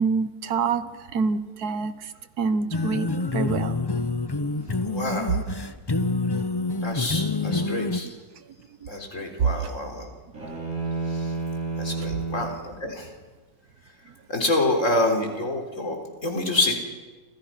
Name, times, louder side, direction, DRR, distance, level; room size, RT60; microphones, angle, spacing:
voice 1, 0.0-2.1 2.4-3.1 3.3-3.7 8.0-8.1 9.4-9.5, right 5 dB, 80° right, 12 dB, 1.7 m, -25 dB
sound 1, 2.7-8.0, left 3 dB, 20° left, 0.7 m, -27 dB
voice 2, 4.9-5.4 6.8-8.1 8.9-10.1 11.1-11.3 11.8-13.1 14.3-16.0 16.2-16.7, left 2 dB, 55° left, 4 dB, 4.3 m, -27 dB
sound 2, 10.3-12.6, right 3 dB, 60° right, 5.1 m, -30 dB
29.5 x 26.5 x 5.9 m, 1.3 s
omnidirectional pair, 1.6 m